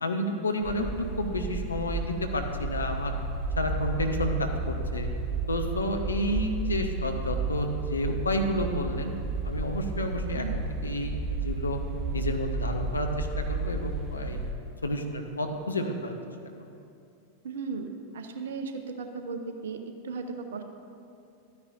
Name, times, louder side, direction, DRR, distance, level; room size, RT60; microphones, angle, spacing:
voice 1, 0.0-3.1 3.6-5.1 5.5-9.1 9.4-11.8 12.1-14.4 14.8-16.1, left 1 dB, 75° left, 4 dB, 0.8 m, -30 dB
sound 1, 0.6-14.5, right 3 dB, 20° right, 1.1 m, -32 dB
voice 2, 17.4-18.7 19.0-20.6, right 4 dB, 60° right, 6 dB, 0.7 m, -36 dB
12.5 x 9.6 x 2.6 m, 2.6 s
figure-of-eight pair, 90°, 0 cm